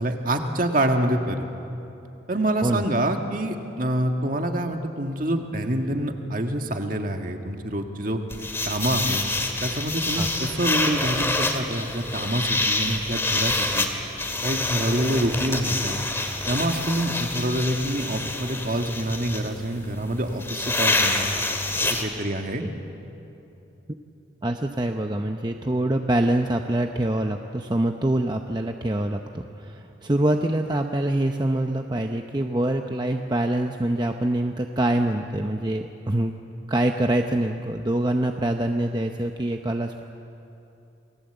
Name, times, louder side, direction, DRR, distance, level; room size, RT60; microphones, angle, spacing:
voice 1, 0.0-1.4 2.3-8.2 8.7-9.2 9.6-13.9 14.4-16.1 16.5-21.4 21.9-22.6, right 1 dB, 45° right, 4 dB, 1.9 m, -26 dB
sound 1, 8.3-22.0, left 2 dB, 15° left, 2.0 m, -27 dB
voice 2, 24.4-29.2 29.6-36.3 36.7-40.0, right 1 dB, 20° right, 4 dB, 0.7 m, -25 dB
29.0 x 20.5 x 8.0 m, 2.9 s
head